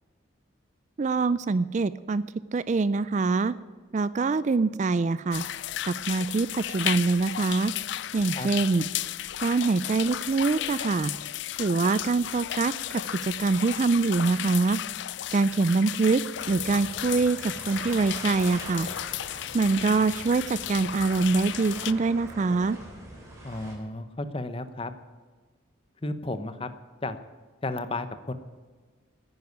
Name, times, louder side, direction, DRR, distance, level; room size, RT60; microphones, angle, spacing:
voice 1, 1.0-2.2 2.5-3.5 3.9-5.4 5.9-7.7 8.1-8.8 9.4-11.1 11.6-12.7 13.1-14.8 15.3-16.2 16.5-18.9 19.5-22.8, right 3 dB, 35° right, 17 dB, 0.3 m, -24 dB
sound 1, 5.3-21.9, left 12 dB, 60° left, 0.4 m, -34 dB
sound 2, 16.3-23.7, right 1 dB, 15° right, 3.4 m, -43 dB
voice 2, 23.4-24.9 26.0-26.7 27.0-27.2 27.6-28.3, left 2 dB, 25° left, 12 dB, 0.7 m, -33 dB
10.0 x 9.6 x 9.4 m, 1.5 s
head